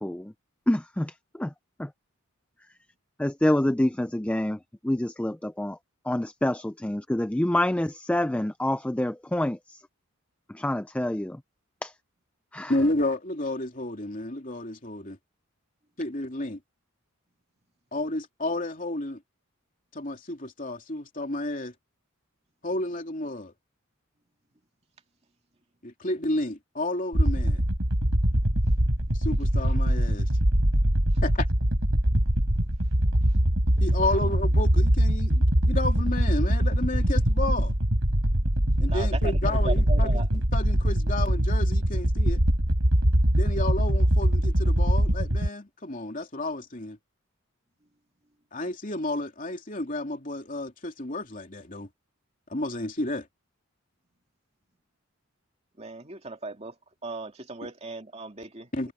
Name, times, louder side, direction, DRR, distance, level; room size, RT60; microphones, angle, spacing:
voice 1, 0.0-0.3 0.7-1.1 1.4-1.5 1.8-1.9 3.2-4.6 4.8-5.8 6.1-9.8 10.5-11.4 11.8-11.9 12.5-12.7, left 1 dB, 5° left, 0.4 m, -27 dB
voice 2, 12.7-15.2 16.0-16.6 17.9-19.2 19.9-21.7 22.6-23.5 25.8-27.6 29.1-30.3 31.2-31.5 33.8-37.7 38.8-42.4 43.4-47.0 48.5-51.9 52.5-53.3 58.7-58.9, left 2 dB, 40° left, 3.1 m, -31 dB
sound 1, 27.1-45.5, equal, 65° right, 4.1 m, -23 dB
voice 3, 38.9-40.3 55.8-56.7 57.0-58.9, right 2 dB, 30° right, 2.4 m, -37 dB
head